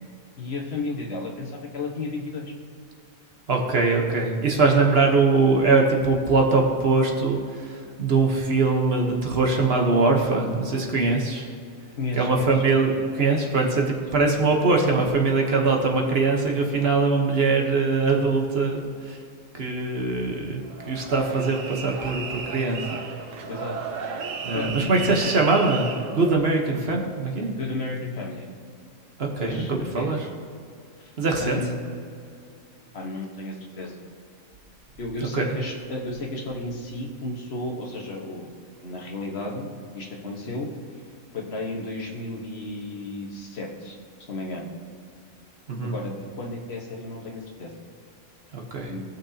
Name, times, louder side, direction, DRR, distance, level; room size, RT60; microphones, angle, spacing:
voice 1, 0.4-2.5 12.0-12.5 14.1-14.2 23.5-23.8 24.5-25.4 27.5-28.5 29.4-30.1 31.0-31.1 31.4-32.0 32.9-34.0 35.0-38.5 38.8-39.7 39.9-40.7 41.3-44.0 44.3-44.7 45.8-47.7 48.9-49.0, left 2 dB, 50° left, -1 dB, 1.5 m, -33 dB
voice 2, 3.5-11.5 12.1-19.2 19.5-20.6 20.9-23.0 24.4-27.5 29.2-30.2 31.2-31.6 35.3-35.6 45.7-45.9 48.5-48.9, right 3 dB, 50° right, 1 dB, 1.3 m, -22 dB
sound 1, 20.7-26.4, right 5 dB, 75° right, 1.2 m, -34 dB
17.5 x 6.0 x 2.8 m, 2.3 s
omnidirectional pair, 1.4 m